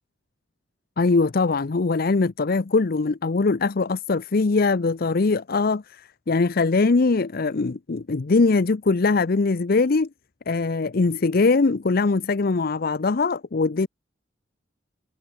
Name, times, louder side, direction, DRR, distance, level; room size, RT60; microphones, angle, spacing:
voice 1, 1.0-10.1 10.5-13.9, left 3 dB, 55° left, 0.6 m, -21 dB
head